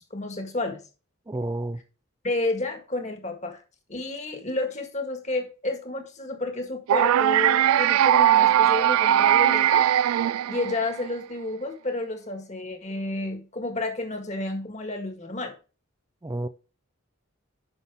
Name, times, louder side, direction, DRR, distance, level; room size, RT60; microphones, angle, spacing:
voice 1, 0.1-0.8 2.2-3.6 3.9-9.9 10.5-15.5, left 2 dB, 35° left, 1.7 m, -31 dB
voice 2, 1.3-1.8 16.2-16.5, right 1 dB, 15° right, 0.4 m, -30 dB
sound 1, 6.9-11.1, right 11 dB, 90° right, 0.3 m, -20 dB
9.7 x 6.0 x 3.6 m
head